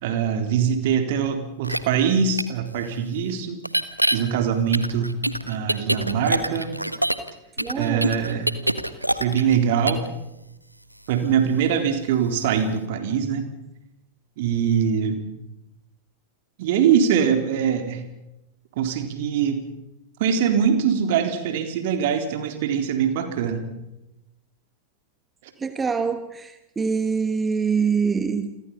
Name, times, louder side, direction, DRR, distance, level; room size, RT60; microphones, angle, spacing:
voice 1, 0.0-3.6 4.1-5.1 5.4-6.7 7.7-8.5 9.2-10.0 11.1-13.5 14.4-15.2 16.6-18.0 18.8-19.6 20.2-23.7, right 7 dB, 50° right, 3.8 m, -22 dB
sound 1, 1.6-1.8 2.4-2.5 3.6-4.2 4.7-7.3 7.6-9.6 9.9-10.1, right 1 dB, 90° right, 1.5 m, -24 dB
voice 2, 7.6-8.1 25.6-28.6, right 5 dB, 15° right, 1.3 m, -25 dB
29.5 x 24.0 x 5.6 m
figure-of-eight pair, 90°, 0 cm